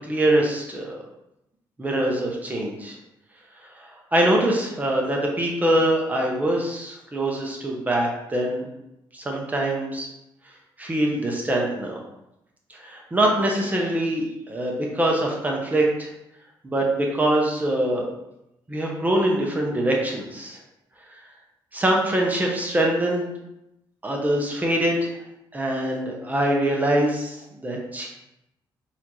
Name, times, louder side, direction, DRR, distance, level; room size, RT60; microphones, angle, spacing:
voice 1, 0.1-1.0 1.8-3.0 3.8-8.6 9.1-10.1 10.8-12.0 12.8-16.1 16.6-18.1 18.7-20.6 21.7-23.3 24.0-25.1 25.5-28.1, right 1 dB, 20° right, -1 dB, 0.7 m, -23 dB
4.2 x 2.5 x 2.9 m, 0.87 s
cardioid pair, 110°, 9 cm